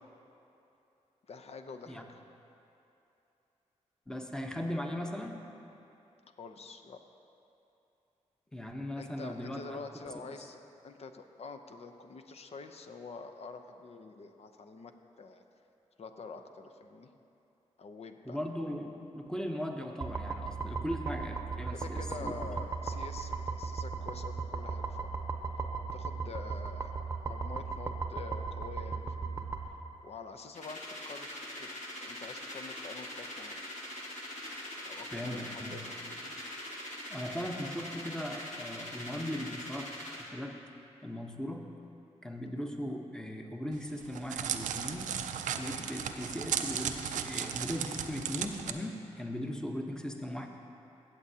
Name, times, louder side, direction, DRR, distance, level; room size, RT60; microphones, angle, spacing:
voice 1, 1.3-2.2 6.2-7.0 9.0-15.4 16.0-17.1 17.8-18.4 21.7-25.1 25.9-26.9 27.2-29.4 30.0-31.7 32.0-33.6 34.8-36.4, left 4 dB, 55° left, 6 dB, 0.7 m, -47 dB
voice 2, 4.1-5.4 8.5-9.8 18.2-22.3 35.1-35.8 37.1-39.9 40.2-40.6 41.0-41.7 42.2-45.1 45.6-50.5, equal, 5° left, 3 dB, 0.9 m, -38 dB
sound 1, 20.0-29.7, right 4 dB, 25° right, 0.8 m, -37 dB
sound 2, 30.5-40.3, left 1 dB, 75° left, 1.4 m, -43 dB
Crackle, 43.7-48.7, right 8 dB, 90° right, 0.4 m, -35 dB
15.5 x 7.5 x 2.8 m, 2.8 s
cardioid pair, 60°, 12 cm